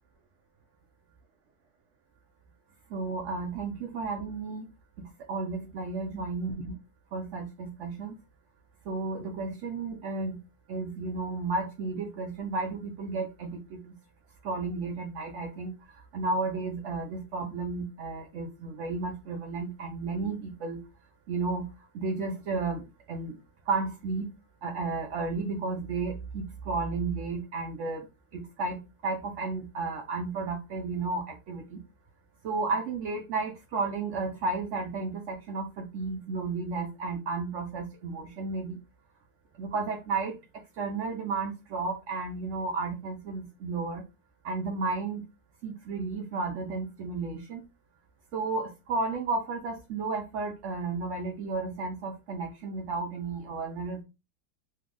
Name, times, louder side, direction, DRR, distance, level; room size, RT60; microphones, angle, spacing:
voice 1, 2.9-4.7 5.0-6.8 7.1-8.1 8.9-10.4 10.7-13.9 14.4-20.8 21.3-23.4 23.7-24.3 24.6-28.1 28.3-31.8 32.4-38.8 39.6-44.0 44.4-45.2 45.6-47.6 48.3-54.0, right 3 dB, 75° right, 0.6 m, -33 dB
3.2 x 2.0 x 3.5 m
omnidirectional pair, 1.9 m